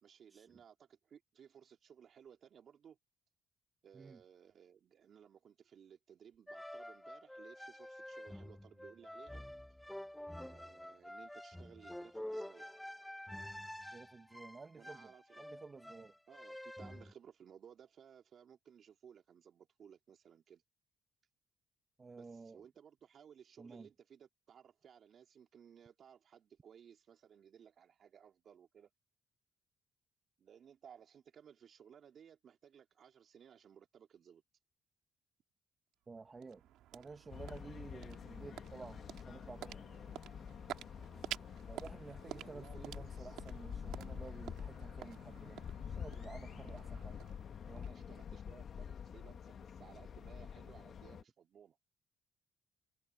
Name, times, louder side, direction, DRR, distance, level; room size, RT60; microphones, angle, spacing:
voice 1, 0.0-3.0 3.8-9.4 10.4-12.7 14.8-15.4 16.3-20.6 22.1-28.9 30.4-34.4 42.3-43.4 47.7-51.8, right 8 dB, 60° right, 3.1 m, -60 dB
sound 1, 6.5-17.1, left 1 dB, 5° left, 0.9 m, -48 dB
voice 2, 13.9-15.1 15.4-16.1 22.0-22.6 23.6-23.9 36.1-36.6 36.9-39.8 41.7-45.6 45.9-47.2 47.7-47.9, right 4 dB, 30° right, 1.2 m, -52 dB
sound 2, 35.9-48.4, right 13 dB, 90° right, 2.1 m, -51 dB
sound 3, 37.3-51.2, left 7 dB, 55° left, 1.9 m, -48 dB
cardioid pair, 90°, 0 cm